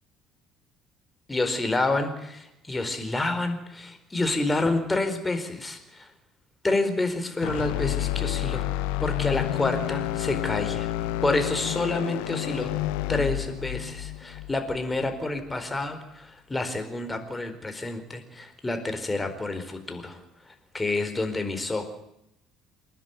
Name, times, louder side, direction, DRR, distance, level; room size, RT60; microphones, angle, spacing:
voice 1, 1.3-6.1 6.6-8.7 9.0-10.9 11.2-12.7 13.1-20.2 20.7-21.8, left 2 dB, 15° left, 7 dB, 4.6 m, -28 dB
sound 1, 7.4-15.6, left 15 dB, 70° left, 0.8 m, -30 dB
28.5 x 11.0 x 9.6 m, 0.84 s
figure-of-eight pair, 55°, 0 cm